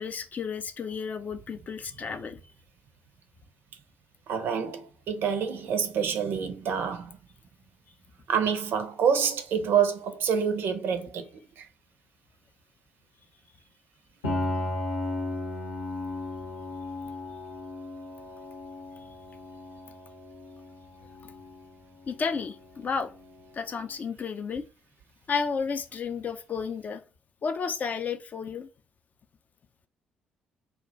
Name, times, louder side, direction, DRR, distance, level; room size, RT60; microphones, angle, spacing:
voice 1, 0.0-2.4 22.1-23.1 23.5-24.6 25.3-27.0 27.4-28.7, left 5 dB, 35° left, 0.4 m, -32 dB
voice 2, 4.3-7.2 8.3-11.3, right 7 dB, 55° right, 0.5 m, -27 dB
Piano, 14.2-23.8, left 2 dB, 75° left, 0.7 m, -36 dB
2.3 x 2.1 x 3.8 m
figure-of-eight pair, 45°, 4 cm